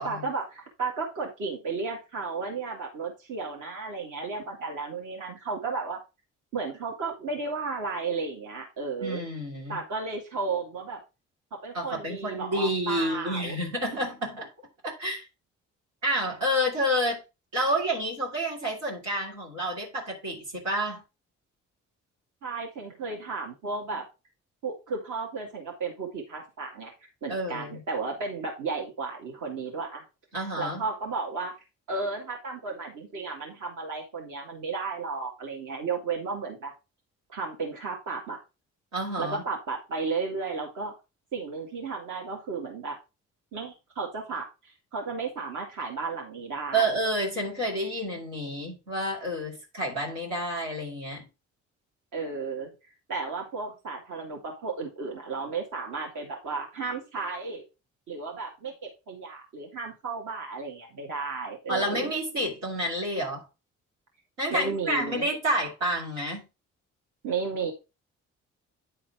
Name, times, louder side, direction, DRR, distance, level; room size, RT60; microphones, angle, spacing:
voice 1, 0.0-6.0 6.5-9.2 9.7-11.0 11.6-13.6 22.4-24.0 24.6-26.9 27.2-30.0 30.3-31.5 31.9-36.7 37.3-38.4 39.2-40.9 41.3-43.0 43.5-46.9 52.1-52.7 53.1-57.7 58.1-58.7 59.1-62.1 64.5-65.3 67.2-67.7, right 4 dB, 55° right, 2.0 m, -33 dB
voice 2, 9.0-9.8 11.7-14.5 14.8-15.2 16.0-17.2 17.5-21.0 27.3-27.8 30.3-30.8 38.9-39.4 46.7-51.3 61.7-63.4 64.4-66.4, equal, 80° right, 2.9 m, -29 dB
9.7 x 3.9 x 4.7 m
figure-of-eight pair, 40°, 37 cm